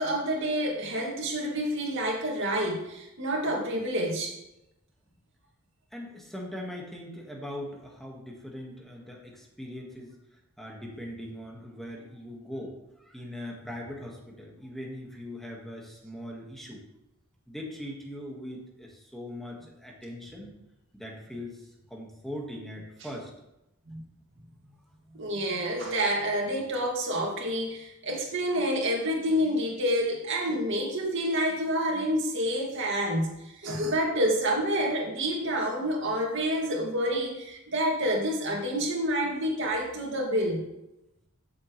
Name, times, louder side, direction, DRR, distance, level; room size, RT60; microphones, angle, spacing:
voice 1, 0.0-4.4 23.9-24.0 25.2-40.7, equal, 55° right, -1 dB, 2.3 m, -28 dB
voice 2, 5.9-10.1 10.6-16.8 17.5-20.5 20.9-23.3, left 1 dB, ahead, -1 dB, 1.7 m, -41 dB
13.5 x 7.2 x 3.3 m, 0.90 s
head